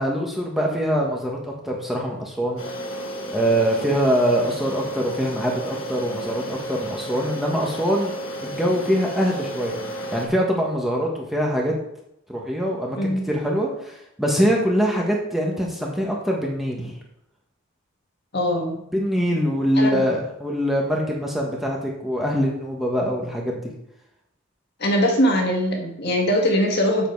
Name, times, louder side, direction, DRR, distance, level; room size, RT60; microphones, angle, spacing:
voice 1, 0.0-2.6 3.3-9.8 10.1-11.7 12.3-17.0 18.9-23.6, equal, ahead, -2 dB, 1.4 m, -23 dB
sound 1, 2.6-10.3, right 1 dB, 65° left, 1.6 m, -32 dB
voice 2, 18.3-18.8 19.7-20.0 24.8-27.1, equal, 50° left, 1 dB, 1.7 m, -21 dB
8.0 x 7.0 x 4.7 m, 0.79 s
head